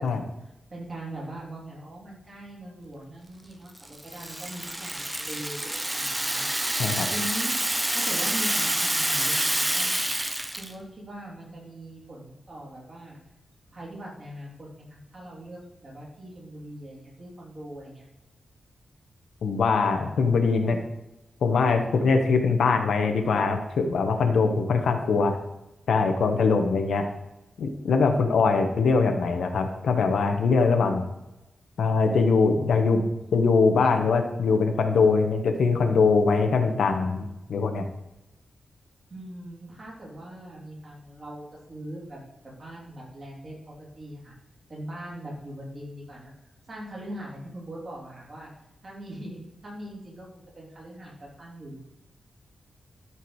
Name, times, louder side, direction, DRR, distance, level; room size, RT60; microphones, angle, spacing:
voice 1, 0.4-6.5 6.9-7.6 7.9-10.0 10.5-13.2 13.7-18.0 39.1-44.3 44.7-46.3 46.7-48.5 48.8-51.8, right 1 dB, 35° right, -4 dB, 3.5 m, -41 dB
Rattle (instrument), 3.8-10.7, right 1 dB, 10° right, 0.6 m, -27 dB
voice 2, 19.4-20.8 21.4-25.4 25.9-27.0 27.6-31.0 31.8-33.0 33.3-37.9, left 4 dB, 90° left, 5 dB, 1.2 m, -22 dB
13.0 x 4.7 x 4.8 m, 0.94 s
wide cardioid pair, 170°, 0 cm